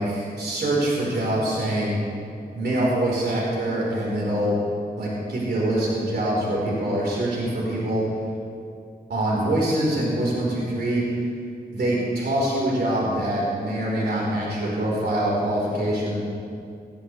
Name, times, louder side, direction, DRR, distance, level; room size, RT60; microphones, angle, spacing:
voice 1, 0.0-1.9 2.5-4.6 5.0-8.0 9.1-11.2 11.7-16.2, right 1 dB, 75° right, -5 dB, 3.9 m, -24 dB
18.5 x 13.0 x 3.2 m, 2.5 s
wide cardioid pair, 80°, 17 cm